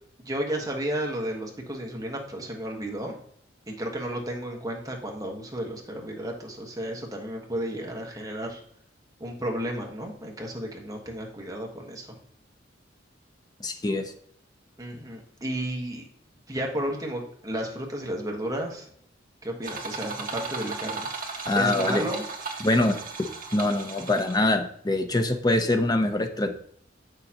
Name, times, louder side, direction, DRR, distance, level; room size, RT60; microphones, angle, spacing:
voice 1, 0.2-3.2 3.7-8.6 9.2-12.1 14.8-16.0 16.5-18.9 19.4-22.2, right 1 dB, 20° right, 0 dB, 1.3 m, -33 dB
voice 2, 13.6-14.0 21.5-22.1 22.6-26.6, left 2 dB, 20° left, 6 dB, 0.7 m, -24 dB
sound 1, 19.6-24.6, right 4 dB, 50° right, 1.6 m, -36 dB
8.0 x 6.5 x 2.9 m, 0.63 s
head